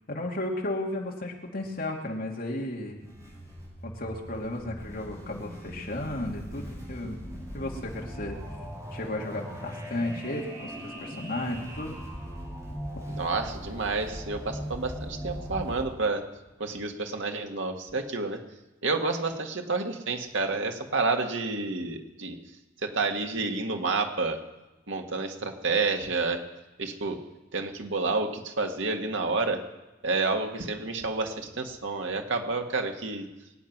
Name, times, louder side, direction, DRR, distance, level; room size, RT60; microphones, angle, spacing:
voice 1, 0.1-3.1 3.8-7.2 7.5-8.4 8.9-11.9, left 1 dB, 50° left, -1 dB, 2.7 m, -34 dB
sound 1, 2.9-15.8, equal, 20° right, 6.2 m, -40 dB
voice 2, 13.1-16.2 16.6-18.4 18.8-22.4 22.8-24.4 24.9-26.4 26.8-27.2 27.5-29.6 30.0-33.3, right 3 dB, 85° right, 3 dB, 1.9 m, -29 dB
22.5 x 9.6 x 6.0 m, 1.0 s
head